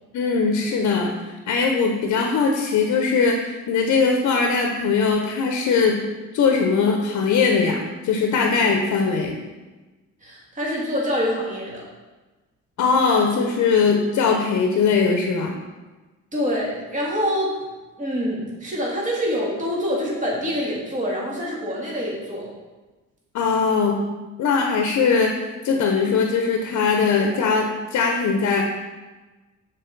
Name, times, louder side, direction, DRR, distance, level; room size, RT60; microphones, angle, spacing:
voice 1, 0.1-6.0 6.3-7.8 8.0-9.3 12.8-15.5 23.3-24.0 24.4-25.3 25.6-28.6, left 5 dB, 65° left, 2 dB, 0.7 m, -20 dB
voice 2, 10.2-11.8 16.3-17.6 18.0-22.5, equal, 25° right, -4 dB, 1.8 m, -26 dB
6.6 x 3.7 x 3.9 m, 1.2 s
cardioid pair, 90°, 30 cm